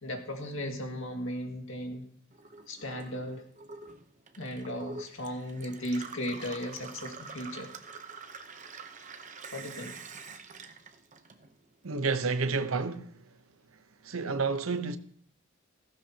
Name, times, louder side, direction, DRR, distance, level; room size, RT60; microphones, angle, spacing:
voice 1, 0.0-2.0 2.7-3.4 4.4-7.7 9.5-10.0, equal, 65° left, 2.0 m, -36 dB
Gurgling / Water tap faucet / Sink (filling or washing), 2.3-11.8 12.1-13.0, right 4 dB, 35° right, 0.8 m, -46 dB
voice 2, 11.8-13.2 14.0-15.0, right 4 dB, 80° right, 0.9 m, -30 dB
15.5 x 15.5 x 2.9 m
head